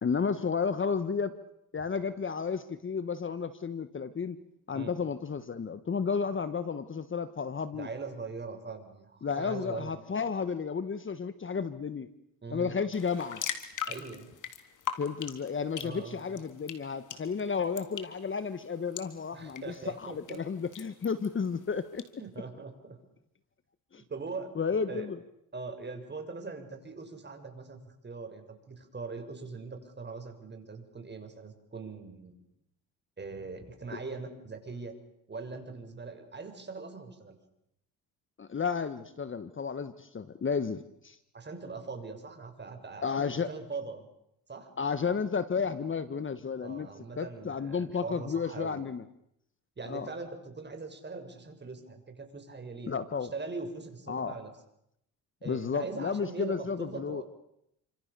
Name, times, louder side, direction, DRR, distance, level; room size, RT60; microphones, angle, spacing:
voice 1, 0.0-1.3 1.7-4.4 4.7-7.9 9.2-12.1 12.5-13.4 15.0-22.0 23.9-24.0 24.5-25.2 33.9-34.0 38.4-41.2 43.0-43.5 44.8-46.9 47.2-49.0 49.9-50.1 52.9-53.3 54.1-54.4 55.4-57.2, left 5 dB, 30° left, 13 dB, 1.5 m, -32 dB
voice 2, 7.7-10.0 12.4-12.8 13.9-14.3 15.8-16.4 19.3-20.4 22.2-23.0 23.9-24.5 24.9-25.1 25.5-32.4 33.2-34.9 35.3-37.4 41.3-44.0 44.5-44.7 46.6-48.9 49.8-53.0 53.3-54.5 55.4-57.2, right 4 dB, 25° right, 6 dB, 6.8 m, -41 dB
sound 1, 12.9-22.1, left 8 dB, 50° left, 3.7 m, -42 dB
29.5 x 26.5 x 7.0 m, 0.78 s
cardioid pair, 90°, 38 cm